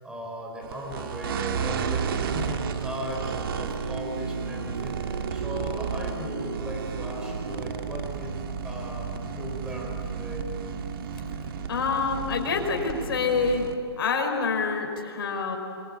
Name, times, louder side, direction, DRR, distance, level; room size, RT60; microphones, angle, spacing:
voice 1, 0.0-8.3 8.6-10.5, equal, 5° right, 0 dB, 5.2 m, -37 dB
sound 1, 0.6-13.8, right 6 dB, 55° right, 2.2 m, -32 dB
voice 2, 11.7-13.7 14.0-15.6, left 4 dB, 60° left, 3 dB, 5.5 m, -26 dB
27.0 x 23.0 x 9.0 m, 2.4 s
hypercardioid pair, 150°, 14 cm